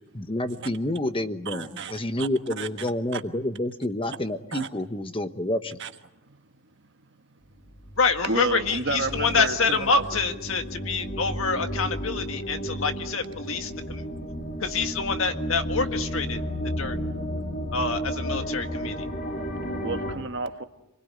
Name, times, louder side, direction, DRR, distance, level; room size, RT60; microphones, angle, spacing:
voice 1, 0.1-5.8, left 1 dB, 25° left, 9 dB, 1.1 m, -29 dB
voice 2, 1.5-1.9 2.2-2.3 2.6-2.7 3.1-3.2 4.5-4.7 5.8-5.9 6.2-6.3 8.2-10.2 19.8-20.6, right 3 dB, 55° right, 7 dB, 1.5 m, -30 dB
sound 1, 7.5-20.1, equal, 45° left, 3.5 m, -33 dB
voice 3, 8.0-14.0 14.6-16.4 16.8-17.0 17.7-18.9, left 4 dB, 60° left, 7 dB, 1.8 m, -26 dB
27.5 x 20.5 x 9.6 m, 0.93 s
head